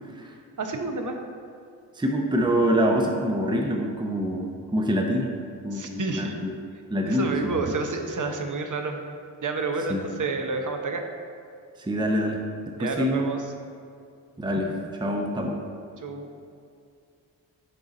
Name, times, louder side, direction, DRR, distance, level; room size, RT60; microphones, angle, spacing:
voice 1, 0.6-1.2 5.7-6.4 7.0-9.0 9.4-11.0 12.8-13.4 16.0-16.3, right 3 dB, 45° right, 4 dB, 0.9 m, -29 dB
voice 2, 1.9-5.3 5.6-6.5 6.9-7.6 9.9-10.0 11.8-12.4 12.8-13.4 14.4-14.7 15.0-15.6, equal, 10° right, 1 dB, 0.7 m, -25 dB
6.7 x 3.9 x 3.9 m, 2.4 s
supercardioid pair, 45°, 44 cm